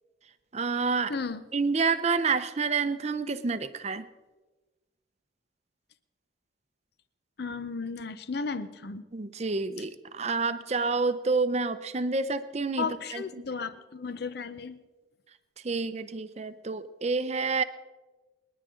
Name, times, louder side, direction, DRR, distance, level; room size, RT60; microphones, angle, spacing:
voice 1, 0.5-1.1 1.5-4.0 9.1-12.8 13.1-13.2 15.6-17.6, right 4 dB, 35° right, 11 dB, 0.6 m, -28 dB
voice 2, 1.1-1.4 7.4-9.1 12.8-14.8, left 4 dB, 55° left, 13 dB, 0.7 m, -34 dB
28.5 x 10.0 x 3.8 m, 1.2 s
head